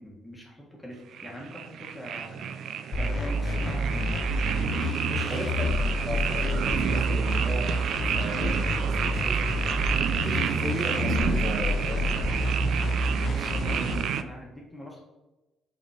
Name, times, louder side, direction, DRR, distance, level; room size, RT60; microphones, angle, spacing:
voice 1, 0.0-2.5 2.9-4.2 5.2-5.5 13.3-15.0, equal, 5° left, -2 dB, 1.5 m, -42 dB
sound 1, 1.1-14.2, right 8 dB, 65° right, 0.4 m, -30 dB
sound 2, 2.9-13.9, left 1 dB, 50° left, 0.7 m, -28 dB
voice 2, 5.1-5.7 6.0-7.7 8.0-12.1, right 1 dB, 35° right, -1 dB, 1.5 m, -37 dB
5.1 x 4.2 x 4.9 m, 1.1 s
cardioid pair, 100°, 0 cm